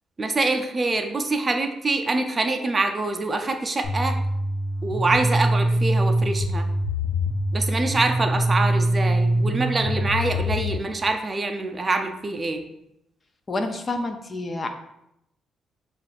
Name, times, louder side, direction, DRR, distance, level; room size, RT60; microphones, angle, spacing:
voice 1, 0.2-4.2 4.8-6.7 7.5-12.6, right 3 dB, 30° right, 5 dB, 0.5 m, -25 dB
sound 1, 3.8-10.7, right 1 dB, 65° left, 1.0 m, -23 dB
voice 2, 13.5-14.7, left 2 dB, 30° left, 7 dB, 0.5 m, -28 dB
7.4 x 2.5 x 2.4 m, 0.83 s
cardioid pair, 90°, 0 cm